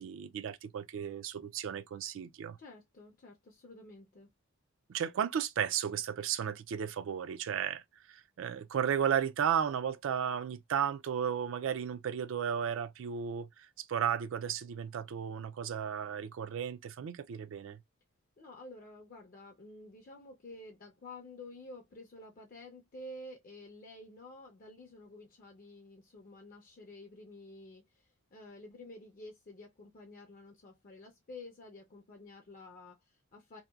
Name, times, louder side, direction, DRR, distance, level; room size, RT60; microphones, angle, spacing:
voice 1, 0.0-2.6 4.9-17.8, right 8 dB, 60° right, 0.3 m, -34 dB
voice 2, 2.6-4.3 18.4-33.6, left 2 dB, 40° left, 0.5 m, -51 dB
2.8 x 2.1 x 2.2 m
head